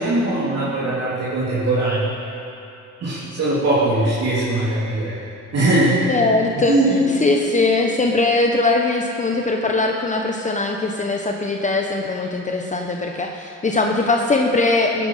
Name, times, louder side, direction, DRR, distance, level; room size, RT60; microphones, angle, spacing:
voice 1, 0.0-2.1 3.0-5.1 5.5-6.0 6.6-7.0, right 2 dB, 55° right, -9 dB, 3.3 m, -20 dB
voice 2, 6.1-6.8 7.2-15.1, left 3 dB, 25° left, 2 dB, 1.0 m, -20 dB
16.0 x 10.0 x 5.8 m, 2.7 s
cardioid pair, 90°, 30 cm